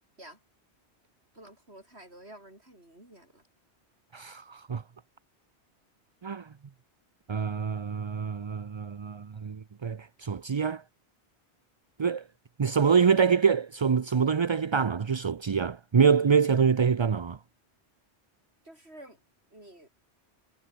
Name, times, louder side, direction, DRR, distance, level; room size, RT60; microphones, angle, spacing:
voice 1, 1.3-3.4 18.6-19.2 19.5-19.9, right 1 dB, 70° right, 8.3 m, -50 dB
voice 2, 4.1-4.8 6.2-6.5 7.3-10.8 12.0-12.3 12.6-17.4, right 6 dB, 40° right, 0.4 m, -25 dB
omnidirectional pair, 1.1 m